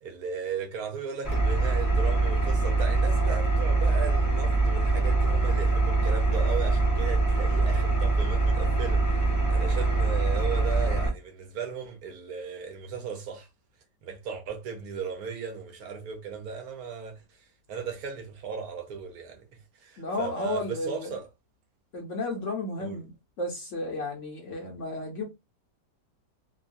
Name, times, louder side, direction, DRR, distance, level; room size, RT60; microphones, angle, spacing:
voice 1, 0.0-13.5 14.0-21.3 22.8-23.0, right 6 dB, 65° right, 1.1 m, -37 dB
Engine, 1.2-11.1, right 3 dB, 15° left, 0.7 m, -24 dB
voice 2, 20.0-21.1 21.9-23.1 23.4-25.2, left 2 dB, 60° left, 0.9 m, -33 dB
3.0 x 2.2 x 2.5 m
omnidirectional pair, 1.8 m